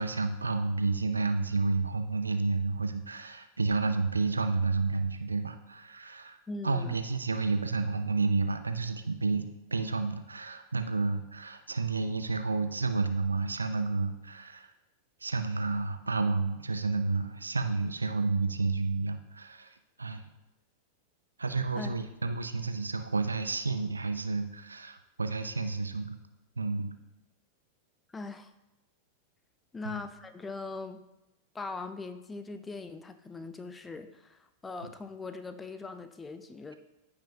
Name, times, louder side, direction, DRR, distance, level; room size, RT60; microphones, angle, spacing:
voice 1, 0.0-6.4 6.6-14.7 15.2-20.2 21.4-26.2 26.6-27.0 29.8-30.0 34.8-34.9, right 3 dB, 80° right, 9 dB, 0.6 m, -30 dB
voice 2, 6.5-7.0 21.7-21.9 28.1-28.5 29.7-31.1 31.5-36.8, left 3 dB, 15° left, 10 dB, 0.6 m, -41 dB
14.5 x 5.3 x 2.8 m, 0.94 s
figure-of-eight pair, 90°, 0 cm